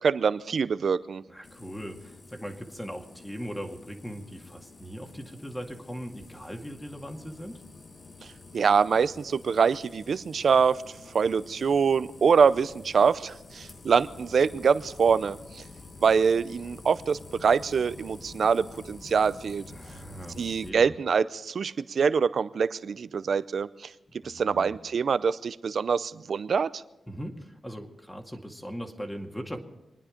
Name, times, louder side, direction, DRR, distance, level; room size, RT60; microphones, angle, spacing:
voice 1, 0.0-1.2 8.5-10.8 11.1-15.6 16.0-19.6 20.4-23.9 24.2-26.8, right 6 dB, 70° right, 16 dB, 0.6 m, -24 dB
voice 2, 1.3-7.6 19.7-20.9 24.2-24.7 27.1-29.6, equal, 10° left, 4 dB, 2.2 m, -39 dB
sound 1, 1.4-20.7, left 3 dB, 50° left, 1.3 m, -48 dB
25.5 x 10.0 x 5.2 m, 0.97 s
cardioid pair, 60°, 0 cm